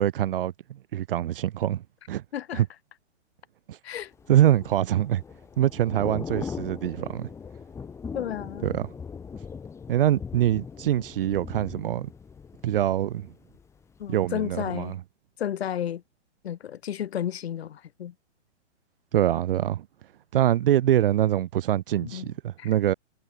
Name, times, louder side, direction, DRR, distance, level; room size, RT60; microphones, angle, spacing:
voice 1, 0.0-1.8 2.1-2.2 2.5-2.7 3.7-3.8 4.3-5.2 5.6-7.3 8.6-8.9 9.9-12.1 12.6-13.3 14.1-15.0 19.1-19.9 20.3-22.9, right 12 dB, 50° right, 1.8 m, -24 dB
voice 2, 2.3-2.6 3.8-4.1 8.1-8.7 14.0-15.0 15.4-16.0 16.4-18.1 22.0-22.3 22.6-22.7, left 10 dB, 60° left, 3.9 m, -32 dB
Thunder / Rain, 4.1-14.1 14.4-14.7, left 6 dB, 10° left, 2.4 m, -40 dB
hypercardioid pair, 160°, 36 cm